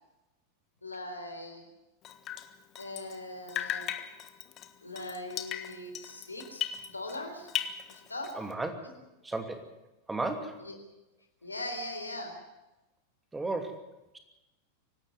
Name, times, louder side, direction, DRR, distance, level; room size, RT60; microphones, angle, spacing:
voice 1, 0.8-1.7 2.8-3.9 4.8-6.7 6.9-7.5 7.9-8.3 10.6-10.8 11.4-12.4, left 1 dB, 80° left, 5 dB, 3.9 m, -40 dB
Drip, 2.0-3.2 3.5-7.2 7.5-8.5, left 11 dB, 35° left, 1.4 m, -37 dB
voice 2, 8.3-8.7 9.2-9.7 10.1-10.7 13.3-14.2, right 2 dB, 10° right, 6 dB, 2.7 m, -35 dB
25.0 x 12.5 x 9.5 m, 1.0 s
figure-of-eight pair, 90°, 0 cm